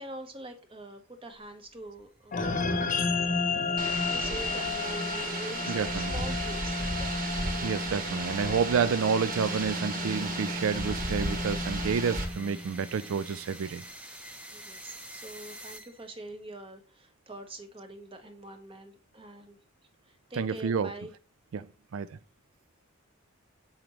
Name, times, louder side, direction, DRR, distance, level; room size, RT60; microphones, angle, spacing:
voice 1, 0.0-3.5 4.1-7.1 14.5-19.6 20.0-21.1, right 1 dB, 25° right, 1.0 m, -44 dB
sound 1, 1.5-16.3, right 1 dB, 5° right, 0.7 m, -50 dB
sound 2, 2.3-12.9, left 3 dB, 40° left, 0.9 m, -33 dB
sound 3, 3.8-12.3, right 2 dB, 45° right, 1.4 m, -34 dB
voice 2, 5.7-6.4 7.6-13.8 20.3-20.9 21.5-21.7 21.9-22.2, right 6 dB, 80° right, 0.4 m, -29 dB
7.2 x 5.1 x 3.0 m
head